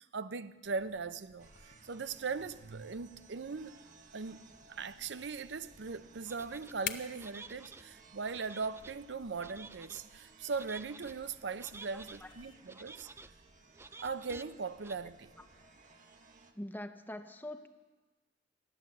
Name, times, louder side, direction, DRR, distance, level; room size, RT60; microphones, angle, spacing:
voice 1, 0.0-1.5 1.8-3.8 4.1-13.1 14.0-15.4, right 4 dB, 70° right, 0.6 m, -39 dB
sound 1, 0.6-12.5, left 8 dB, 50° left, 0.7 m, -51 dB
sound 2, 1.4-16.5, right 3 dB, 45° right, 1.2 m, -60 dB
sound 3, 6.3-6.7 7.2-7.8 8.3-8.9 9.4-10.0 10.5-11.1 11.6-12.2 12.7-13.3 13.7-14.4 14.8-15.0, right 3 dB, 15° right, 0.4 m, -51 dB
voice 2, 11.9-12.3 12.8-12.9 15.4-15.5 16.6-17.7, left 1 dB, 10° left, 0.7 m, -44 dB
15.0 x 10.5 x 7.6 m
head